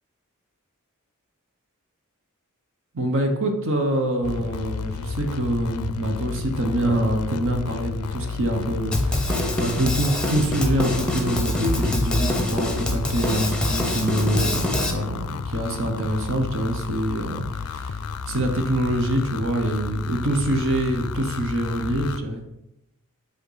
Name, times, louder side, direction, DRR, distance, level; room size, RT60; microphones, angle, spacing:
voice 1, 2.9-18.0 18.3-22.4, right 1 dB, 60° right, 4 dB, 1.0 m, -25 dB
sound 1, 4.2-22.2, left 5 dB, 85° left, 0.4 m, -32 dB
Drum kit, 8.9-14.9, left 1 dB, 5° left, 0.8 m, -25 dB
7.7 x 3.6 x 5.6 m, 0.87 s
head